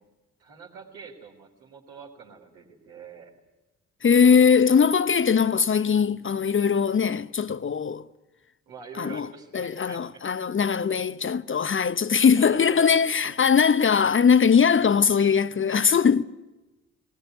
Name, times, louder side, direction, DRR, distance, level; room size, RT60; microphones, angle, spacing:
voice 1, 0.4-3.4 8.7-10.2 12.2-13.4, right 5 dB, 75° right, 3.9 m, -45 dB
voice 2, 4.0-8.0 9.0-9.3 9.5-16.2, left 6 dB, 30° left, 0.8 m, -20 dB
20.0 x 20.0 x 9.5 m
figure-of-eight pair, 40°, 42 cm